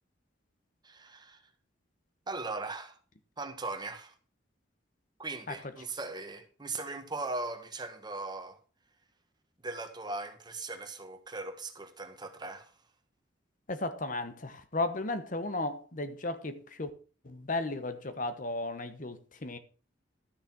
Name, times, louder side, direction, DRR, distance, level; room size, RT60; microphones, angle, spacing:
voice 1, 0.8-1.4 2.3-3.0 3.4-4.1 5.2-8.6 9.6-12.7, right 3 dB, 25° right, 1.5 m, -39 dB
voice 2, 13.7-16.9 17.2-19.6, left 2 dB, 45° left, 1.1 m, -35 dB
13.0 x 6.7 x 6.1 m
head